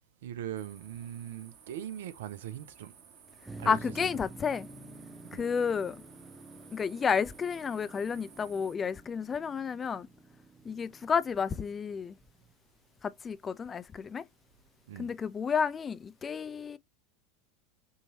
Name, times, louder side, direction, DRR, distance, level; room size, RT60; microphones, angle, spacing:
voice 1, 0.2-2.9 3.6-3.8 5.3-5.4 14.9-15.1, right 11 dB, 70° right, 0.7 m, -40 dB
sound 1, 0.5-8.7, right 6 dB, 45° right, 2.3 m, -56 dB
Motor vehicle (road), 3.4-12.4, right 3 dB, 10° right, 0.9 m, -50 dB
voice 2, 3.7-4.7 5.3-6.0 6.7-10.1 10.6-12.2 13.0-14.2 15.0-16.8, left 6 dB, 25° left, 0.5 m, -31 dB
5.6 x 2.9 x 2.8 m
hypercardioid pair, 80°, 0 cm